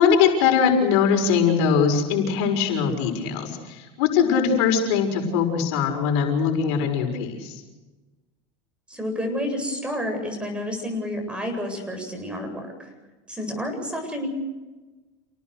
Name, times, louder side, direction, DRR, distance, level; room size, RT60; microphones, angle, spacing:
voice 1, 0.0-7.5, left 6 dB, 75° left, 4 dB, 6.2 m, -21 dB
voice 2, 8.9-12.9 13.3-14.3, equal, 5° right, 3 dB, 8.0 m, -30 dB
29.5 x 19.0 x 6.6 m, 1.2 s
supercardioid pair, 125°, 14 cm